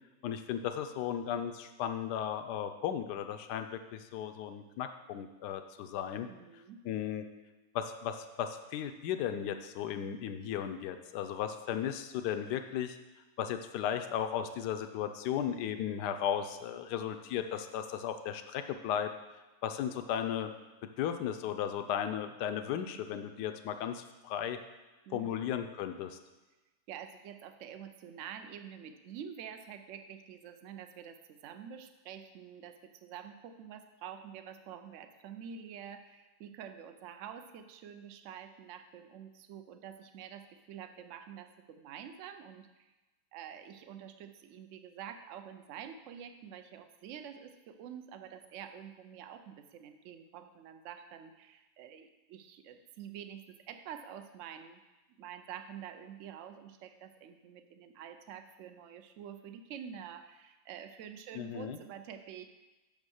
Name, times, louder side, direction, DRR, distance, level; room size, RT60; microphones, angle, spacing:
voice 1, 0.2-6.3 6.8-7.3 7.7-13.0 13.4-19.1 19.6-20.5 21.0-24.6 25.1-26.2 61.3-61.8, left 9 dB, 80° left, 7 dB, 1.2 m, -35 dB
voice 2, 6.3-6.8 25.1-25.5 26.9-42.9 43.3-54.8 55.2-62.5, right 8 dB, 60° right, 8 dB, 0.8 m, -47 dB
6.4 x 5.3 x 6.4 m, 1.1 s
omnidirectional pair, 1.8 m